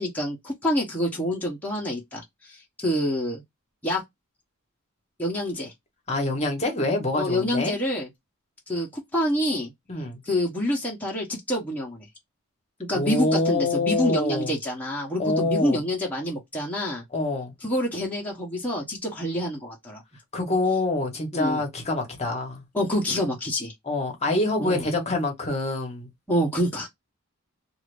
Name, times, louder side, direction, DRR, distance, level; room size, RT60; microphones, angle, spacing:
voice 1, 0.0-3.4 3.8-4.0 5.2-5.7 7.2-8.1 8.7-9.7 10.3-12.0 12.9-17.0 17.6-20.0 21.3-21.6 22.7-23.7 24.6-24.8 26.3-26.9, equal, 10° left, 1.0 m, -27 dB
voice 2, 6.1-7.8 9.9-10.2 12.9-14.5 15.2-15.8 17.1-17.5 20.3-22.6 23.8-26.1, left 2 dB, 30° left, 1.1 m, -26 dB
2.7 x 2.5 x 3.2 m
head